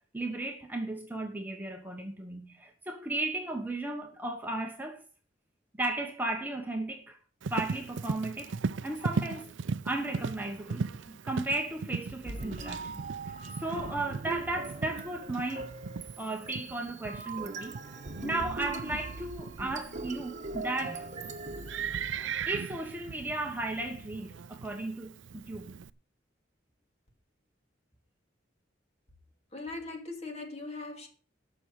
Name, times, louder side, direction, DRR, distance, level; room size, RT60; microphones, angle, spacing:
voice 1, 0.1-5.0 5.8-7.2 7.5-8.6 8.8-9.5 9.8-13.0 13.6-15.7 16.2-17.8 18.2-21.1 22.1-25.7, right 2 dB, 10° right, 1.1 m, -35 dB
Livestock farm animals working animals, 7.4-25.9, right 5 dB, 75° right, 0.5 m, -38 dB
sound 1, 12.2-22.6, right 3 dB, 40° right, 1.2 m, -41 dB
voice 2, 29.5-31.1, left 3 dB, 35° left, 2.6 m, -40 dB
13.0 x 6.0 x 6.4 m
head